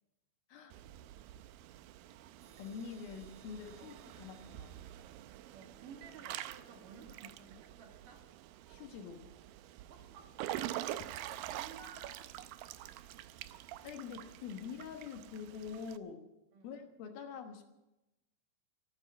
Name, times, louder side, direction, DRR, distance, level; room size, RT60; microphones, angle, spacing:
Water / Splash splatter / Drip, 0.7-16.0, right 13 dB, 80° right, 2.1 m, -46 dB
sound 1, 2.4-6.0, right 2 dB, 40° right, 1.7 m, -67 dB
voice 1, 2.6-4.8 8.7-9.3 10.9-11.0 13.8-16.3 16.6-17.7, left 6 dB, 70° left, 5 dB, 2.9 m, -46 dB
voice 2, 5.5-8.3 9.9-12.4 12.6-13.0 13.5-13.9 16.5-16.7, right 5 dB, 60° right, 3 dB, 3.0 m, -55 dB
14.0 x 12.0 x 8.6 m, 0.97 s
omnidirectional pair, 4.7 m